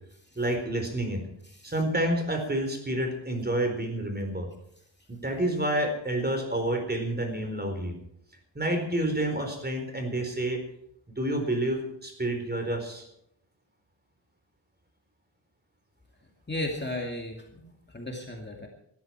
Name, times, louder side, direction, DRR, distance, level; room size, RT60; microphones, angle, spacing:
voice 1, 0.4-1.2 1.6-4.5 5.1-7.9 8.5-10.6 11.2-13.1, right 1 dB, 20° right, 5 dB, 4.3 m, -29 dB
voice 2, 16.5-18.7, left 1 dB, 25° left, 1 dB, 2.4 m, -35 dB
20.0 x 13.5 x 4.7 m, 0.74 s
wide cardioid pair, 135°, 46 cm